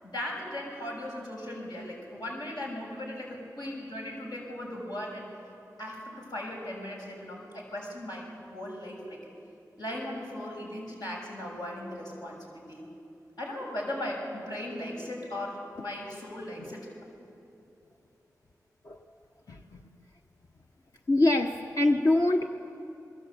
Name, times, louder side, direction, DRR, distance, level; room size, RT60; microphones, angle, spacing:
voice 1, 0.0-5.3 5.8-8.2 8.5-9.2 9.8-12.9 13.4-16.9, left 1 dB, 85° left, -2 dB, 6.8 m, -38 dB
voice 2, 21.1-22.5, left 2 dB, 55° left, 2 dB, 1.1 m, -24 dB
28.0 x 22.0 x 8.4 m, 2.8 s
wide cardioid pair, 70°, 7 cm